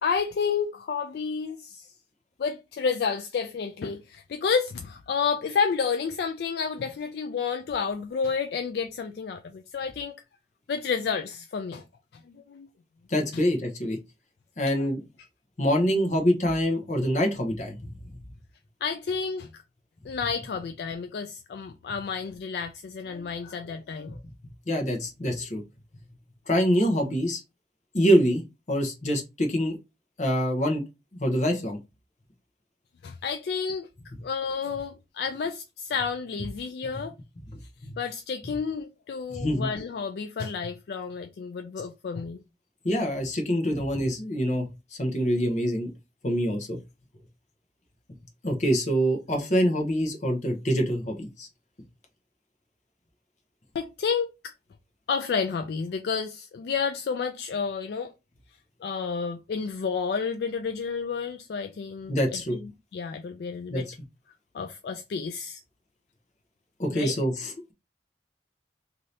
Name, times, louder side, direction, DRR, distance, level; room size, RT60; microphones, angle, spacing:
voice 1, 0.0-1.9 2.4-10.2 10.7-11.8 12.3-12.7 13.3-13.4 18.8-19.6 20.0-24.2 33.0-33.9 34.2-37.1 38.0-42.4 53.7-54.5 55.1-58.1 58.8-63.9 64.5-65.6 66.9-67.1, left 5 dB, 60° left, 0.3 m, -30 dB
voice 2, 13.1-14.0 14.6-15.0 15.6-17.8 24.7-25.6 26.5-27.4 27.9-28.4 28.7-29.7 30.2-30.8 31.1-31.8 37.8-38.0 39.3-39.7 42.8-45.9 46.2-46.8 48.4-51.5 62.1-62.6 63.7-63.9 66.8-67.7, equal, 40° left, 0.8 m, -25 dB
2.7 x 2.7 x 3.2 m
head